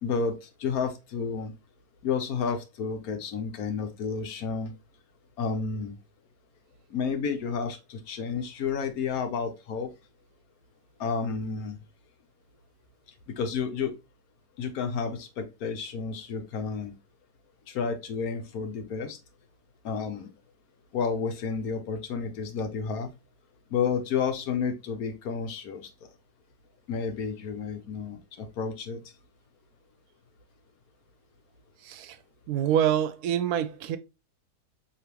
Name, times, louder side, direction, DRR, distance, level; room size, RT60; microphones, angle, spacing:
voice 1, 0.0-1.5 2.0-4.7 5.4-6.0 6.9-9.9 11.0-11.8 13.4-13.9 14.6-16.9 17.7-19.2 19.8-20.3 20.9-23.1 23.7-25.9 26.9-29.0, left 5 dB, 70° left, 1.3 m, -31 dB
voice 2, 31.8-32.2 32.5-34.0, right 10 dB, 80° right, 1.1 m, -26 dB
5.1 x 3.1 x 2.9 m
omnidirectional pair, 1.6 m